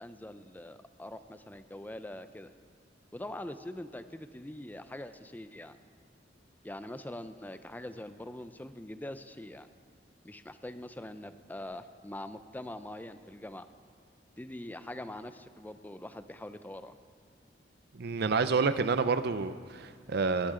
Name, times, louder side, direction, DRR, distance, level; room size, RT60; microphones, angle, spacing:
voice 1, 0.0-2.5 3.1-5.8 6.6-9.7 10.2-13.7 14.4-16.9, left 1 dB, 10° left, 11 dB, 0.5 m, -43 dB
voice 2, 17.9-20.5, right 4 dB, 60° right, 12 dB, 0.5 m, -29 dB
20.0 x 12.0 x 3.8 m, 2.1 s
head